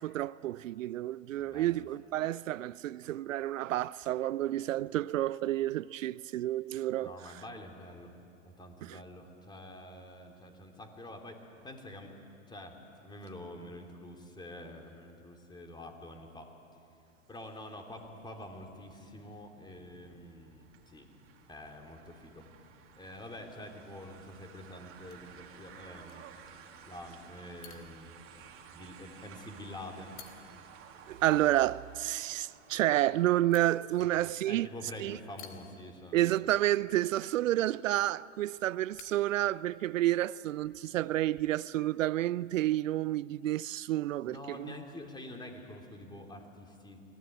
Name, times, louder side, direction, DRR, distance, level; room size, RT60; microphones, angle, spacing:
voice 1, 0.0-7.2 8.8-9.0 31.1-34.7 35.0-35.2 36.1-44.7, right 14 dB, 75° right, 0.5 m, -30 dB
voice 2, 1.4-1.9 7.0-8.1 8.4-12.2 12.5-12.7 13.0-16.5 17.3-21.1 21.5-22.4 23.0-26.2 26.8-28.1 28.7-30.2 34.2-36.2 44.2-47.0, left 1 dB, 10° left, 2.9 m, -47 dB
sound 1, 17.9-33.5, right 7 dB, 35° right, 2.7 m, -55 dB
sound 2, 24.9-40.1, left 8 dB, 55° left, 3.7 m, -61 dB
25.0 x 18.5 x 9.3 m
hypercardioid pair, 115°, 39 cm